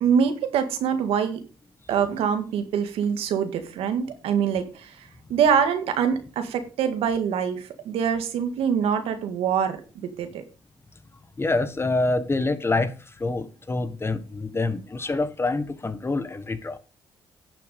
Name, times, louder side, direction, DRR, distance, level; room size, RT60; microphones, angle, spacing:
voice 1, 0.0-1.4 1.9-9.8 10.0-10.4, right 7 dB, 85° right, 1.9 m, -24 dB
voice 2, 11.4-16.8, left 2 dB, 25° left, 1.5 m, -26 dB
10.5 x 7.0 x 5.3 m
cardioid pair, 80°, 10 cm